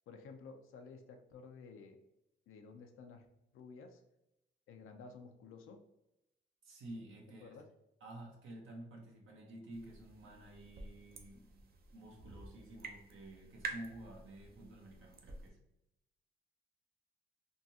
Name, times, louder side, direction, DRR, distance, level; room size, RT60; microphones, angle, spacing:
voice 1, 0.1-2.0 2.5-3.3 3.5-4.0 4.7-5.8 7.4-7.7, left 4 dB, 80° left, 5 dB, 0.4 m, -53 dB
voice 2, 6.6-7.6 8.0-15.6, right 1 dB, 75° right, 0 dB, 0.9 m, -51 dB
sound 1, 9.7-15.5, right 3 dB, 45° right, 0.5 m, -50 dB
3.6 x 2.3 x 2.7 m, 0.86 s
cardioid pair, 105°, 21 cm